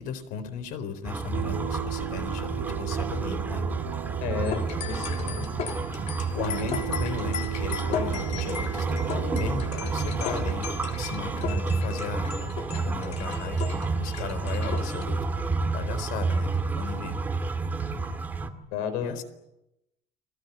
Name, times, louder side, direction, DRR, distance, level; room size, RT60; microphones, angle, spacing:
voice 1, 0.0-3.8 4.9-5.5 6.3-10.7 11.0-15.2 15.7-17.2 19.0-19.2, left 7 dB, 65° left, 13 dB, 4.2 m, -36 dB
sound 1, 1.0-18.5, right 4 dB, 10° right, 1.9 m, -30 dB
sound 2, 1.3-11.4, right 12 dB, 60° right, 1.6 m, -36 dB
voice 2, 4.2-5.5 18.7-19.1, left 7 dB, 85° left, 10 dB, 6.2 m, -32 dB
sound 3, 4.5-15.0, left 8 dB, 50° left, 3.5 m, -37 dB
30.0 x 22.0 x 8.4 m, 0.89 s
cardioid pair, 175°, 15 cm